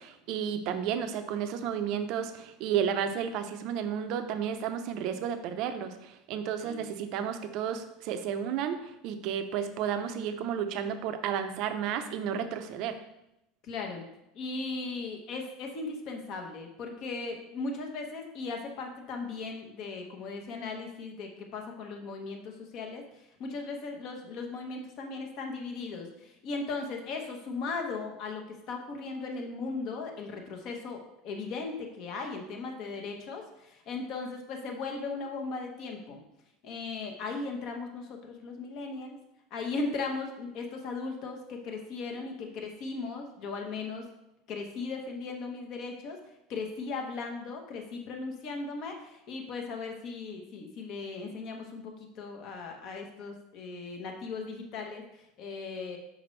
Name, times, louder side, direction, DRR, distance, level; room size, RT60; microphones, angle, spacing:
voice 1, 0.0-13.0, right 8 dB, 50° right, 8 dB, 0.6 m, -32 dB
voice 2, 13.6-14.0 14.3-23.0 23.4-36.2 36.6-39.2 39.5-44.1 44.5-46.2 46.5-56.0, left 3 dB, 40° left, 3 dB, 1.0 m, -37 dB
6.0 x 5.1 x 3.2 m, 0.86 s
supercardioid pair, 165°, 0 cm